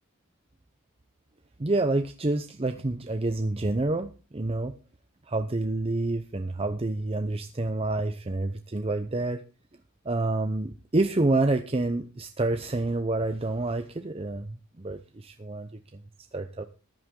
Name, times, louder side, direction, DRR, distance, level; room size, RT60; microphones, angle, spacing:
voice 1, 1.6-4.7 5.3-9.4 10.0-16.0 16.3-16.6, right 2 dB, 25° right, 8 dB, 0.7 m, -28 dB
14.0 x 11.0 x 3.8 m, 0.33 s
head